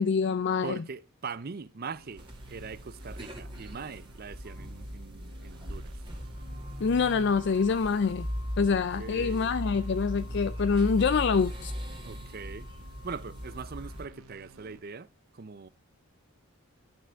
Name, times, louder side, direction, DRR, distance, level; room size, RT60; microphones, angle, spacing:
voice 1, 0.0-0.8 6.8-8.3 8.6-11.7, left 5 dB, 50° left, 0.4 m, -26 dB
voice 2, 0.6-6.0 8.7-9.5 12.0-12.7 13.0-15.1 15.3-15.7, right 5 dB, 45° right, 0.5 m, -41 dB
sound 1, 1.9-14.8, right 2 dB, 75° right, 1.0 m, -54 dB
sound 2, 2.2-14.1, equal, 20° right, 2.0 m, -39 dB
12.0 x 6.5 x 4.6 m
head